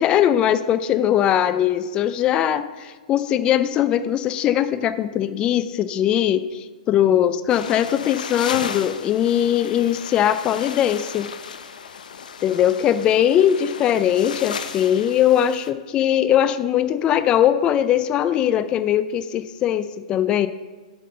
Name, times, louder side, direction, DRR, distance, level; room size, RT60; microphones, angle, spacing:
voice 1, 0.0-11.3 12.4-20.5, left 10 dB, 20° left, 13 dB, 0.4 m, -20 dB
sound 1, 7.5-15.7, left 6 dB, 80° left, 0.7 m, -35 dB
7.6 x 5.3 x 6.7 m, 1.3 s
hypercardioid pair, 150°, 4 cm